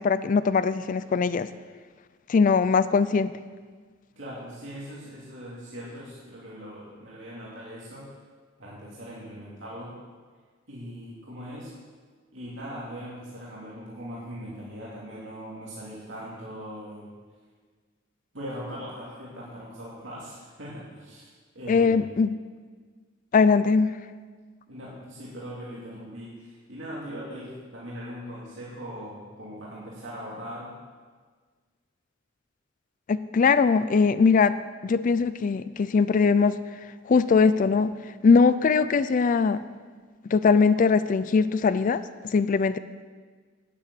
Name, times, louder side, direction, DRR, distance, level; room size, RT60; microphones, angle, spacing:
voice 1, 0.0-1.5 2.3-3.3 21.7-22.4 23.3-24.0 33.1-34.6 34.8-36.6 37.0-37.9 38.2-39.6 40.3-42.8, left 5 dB, 45° left, 14 dB, 0.4 m, -21 dB
voice 2, 4.2-8.2 8.6-10.0 10.7-11.7 12.3-17.1 18.3-21.3 21.5-22.1 24.7-30.7, equal, 75° right, -6 dB, 2.6 m, -40 dB
9.6 x 8.7 x 8.4 m, 1.5 s
head